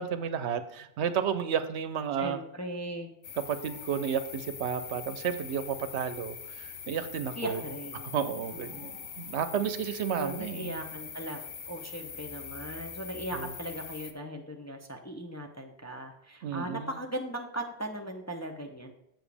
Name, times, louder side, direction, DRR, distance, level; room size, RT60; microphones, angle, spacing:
voice 1, 0.0-2.4 3.5-7.6 7.9-10.8 13.3-13.5 16.4-16.9, right 7 dB, 75° right, 12 dB, 0.9 m, -32 dB
voice 2, 2.2-3.1 7.4-8.1 8.5-9.1 10.2-18.9, right 1 dB, 20° left, 2 dB, 0.5 m, -38 dB
sound 1, 3.2-14.1, left 7 dB, 85° left, 1.1 m, -43 dB
7.6 x 7.1 x 3.4 m, 0.82 s
omnidirectional pair, 1.2 m